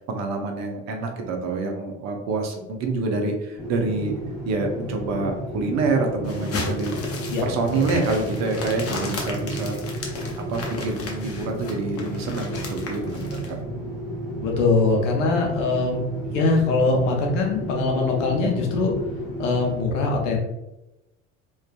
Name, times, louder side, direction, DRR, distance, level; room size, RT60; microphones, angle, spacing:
voice 1, 0.1-4.1 4.4-6.9 7.4-9.8 10.4-13.6, right 3 dB, 50° right, 3 dB, 0.6 m, -27 dB
sound 1, 3.6-19.8, equal, ahead, 1.1 m, -32 dB
sound 2, 6.2-13.5, left 3 dB, 40° left, 0.7 m, -34 dB
voice 2, 14.4-18.9 19.4-20.4, left 3 dB, 75° left, 1 dB, 0.7 m, -22 dB
2.4 x 2.3 x 2.2 m, 0.94 s
hypercardioid pair, 70°, 37 cm